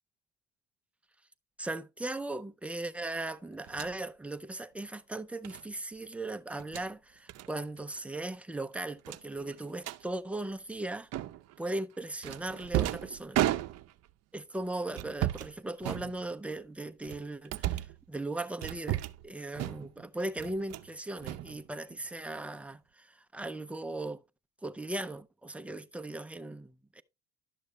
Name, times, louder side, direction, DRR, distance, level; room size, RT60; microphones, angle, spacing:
voice 1, 1.6-11.1 11.6-13.4 14.3-24.2 24.6-27.0, right 2 dB, 5° right, 0.4 m, -38 dB
sound 1, 3.7-4.0 5.4-5.6 6.5-6.9 7.3-7.5 7.8-8.0 8.3-8.4 9.0-10.0 11.1-11.6 12.2-14.1 14.9-15.5 15.8-16.5 17.0-18.0 18.6-19.3 19.6-20.0 20.4-20.9 21.2-22.1, right 14 dB, 50° right, 0.6 m, -34 dB
11.5 x 6.6 x 3.1 m
cardioid pair, 135°, 34 cm